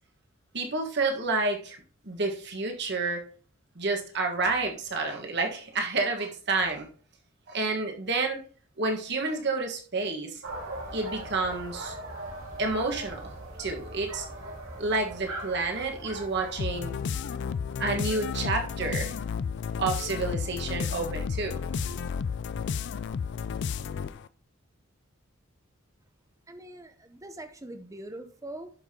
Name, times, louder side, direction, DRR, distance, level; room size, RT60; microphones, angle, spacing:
voice 1, 0.5-1.8 2.0-3.2 3.7-6.9 7.5-8.4 8.8-10.4 10.9-11.9 12.6-13.3 13.6-14.3 14.8-16.9 17.8-19.2 19.8-22.0, right 3 dB, 55° right, 1.5 m, -29 dB
sound 1, 10.4-16.6, right 2 dB, 90° right, 2.1 m, -40 dB
sound 2, 16.6-24.3, left 6 dB, 55° left, 0.3 m, -32 dB
voice 2, 26.5-28.7, right 1 dB, 15° right, 0.7 m, -42 dB
11.5 x 5.7 x 2.9 m
head